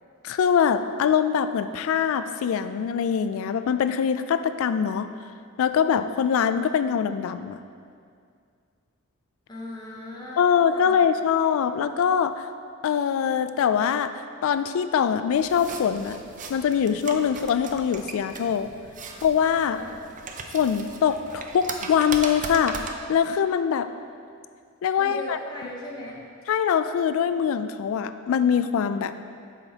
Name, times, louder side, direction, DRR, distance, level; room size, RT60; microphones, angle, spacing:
voice 1, 0.2-5.1 5.6-7.6 10.4-12.5 12.8-16.2 16.5-18.7 19.2-19.8 20.5-23.9 24.8-25.4 26.5-29.1, left 7 dB, 70° left, 12 dB, 0.3 m, -23 dB
voice 2, 9.5-11.1 19.8-20.0 25.0-26.2, equal, 20° left, -3 dB, 0.8 m, -38 dB
sound 1, 15.3-23.0, right 4 dB, 40° right, 0.5 m, -38 dB
7.9 x 5.8 x 2.8 m, 2.3 s
head